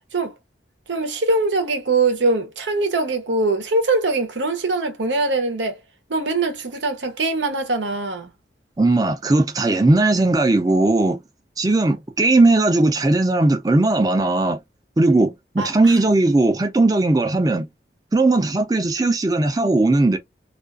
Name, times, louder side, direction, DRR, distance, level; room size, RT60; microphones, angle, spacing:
voice 1, 0.9-5.8 6.1-8.3 15.6-15.7, right 3 dB, 90° right, 0.8 m, -22 dB
voice 2, 8.8-11.2 11.6-14.6 15.0-17.7 18.1-20.2, right 2 dB, 20° right, 0.4 m, -18 dB
2.4 x 2.3 x 2.3 m
head